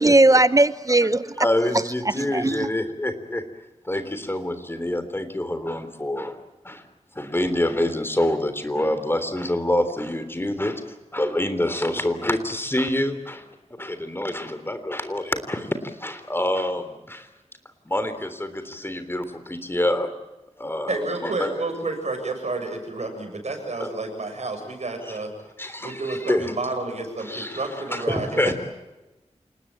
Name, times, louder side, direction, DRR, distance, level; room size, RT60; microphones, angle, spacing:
voice 1, 0.0-1.5 1.7-2.7, right 2 dB, 30° right, 15 dB, 0.8 m, -19 dB
voice 2, 1.4-3.4 3.8-6.4 6.6-6.8 7.2-10.8 11.1-13.4 13.7-17.3 17.9-20.1 20.6-21.5 23.8-23.9 25.0-25.2 25.6-26.5 27.2-27.6 27.9-28.5, left 1 dB, 20° left, 10 dB, 3.4 m, -26 dB
voice 3, 20.9-25.3 25.8-28.5, right 3 dB, 70° right, 4 dB, 7.3 m, -30 dB
28.0 x 19.0 x 8.8 m, 1.1 s
wide cardioid pair, 85°, 12 cm